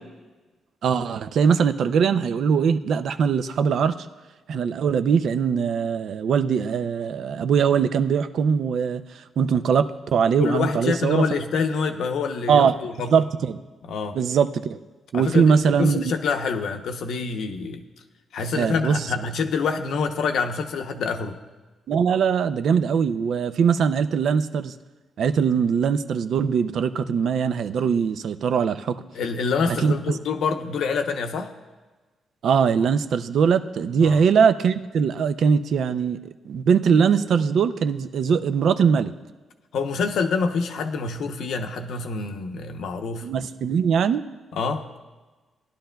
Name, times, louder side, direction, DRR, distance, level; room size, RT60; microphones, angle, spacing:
voice 1, 0.8-3.9 4.5-9.0 9.4-11.3 12.5-12.7 13.1-13.6 14.1-14.8 15.1-16.0 18.6-19.1 21.9-24.7 25.2-29.0 29.7-30.0 32.4-39.1 43.2-44.2, right 6 dB, 60° right, 11 dB, 0.4 m, -21 dB
voice 2, 10.4-13.1 13.8-14.2 15.1-17.8 18.3-21.4 29.1-31.5 34.0-34.2 39.7-43.3 44.5-44.9, left 5 dB, 70° left, 5 dB, 0.8 m, -26 dB
18.5 x 11.5 x 2.3 m, 1.3 s
wide cardioid pair, 165°, 0 cm